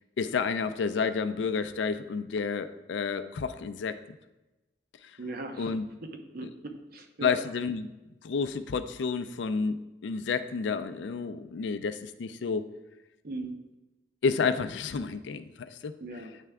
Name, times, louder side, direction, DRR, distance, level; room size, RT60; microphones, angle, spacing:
voice 1, 0.2-4.0 5.6-5.8 6.4-6.5 7.2-7.9 8.2-12.7 14.2-16.0, left 5 dB, 70° left, 11 dB, 0.4 m, -30 dB
voice 2, 5.2-5.7 6.3-7.4 13.2-13.6 16.0-16.5, right 2 dB, 55° right, 5 dB, 0.7 m, -38 dB
9.2 x 3.3 x 3.5 m, 1.0 s
head